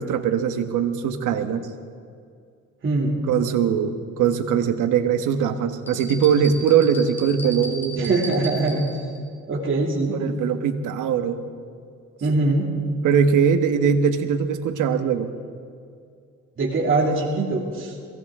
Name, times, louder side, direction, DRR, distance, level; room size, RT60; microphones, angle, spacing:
voice 1, 0.0-1.7 3.3-8.1 10.1-11.4 13.0-15.3, right 7 dB, 80° right, 8 dB, 1.3 m, -21 dB
sound 1, 5.9-9.2, right 1 dB, 5° left, 3.0 m, -36 dB
voice 2, 7.9-9.1 9.5-10.1 12.2-12.7 16.6-17.9, right 2 dB, 40° right, -1 dB, 2.6 m, -22 dB
22.5 x 17.0 x 3.7 m, 2.3 s
cardioid pair, 90°, 30 cm